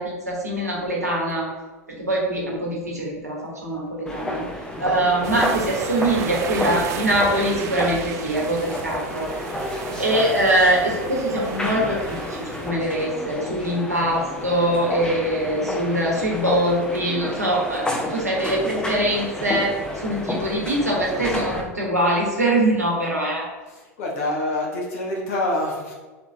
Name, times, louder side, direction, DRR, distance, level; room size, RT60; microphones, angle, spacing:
voice 1, 0.0-1.5 2.0-4.4 4.8-9.3 10.0-23.4, right 1 dB, 85° right, -2 dB, 1.1 m, -23 dB
sound 1, 4.1-21.6, left 1 dB, 10° left, 0.8 m, -31 dB
sound 2, 5.2-12.7, right 6 dB, 40° right, 0.5 m, -34 dB
voice 2, 23.7-25.9, left 1 dB, 60° left, -1 dB, 1.0 m, -26 dB
4.1 x 3.1 x 3.9 m, 1.3 s
figure-of-eight pair, 80°, 8 cm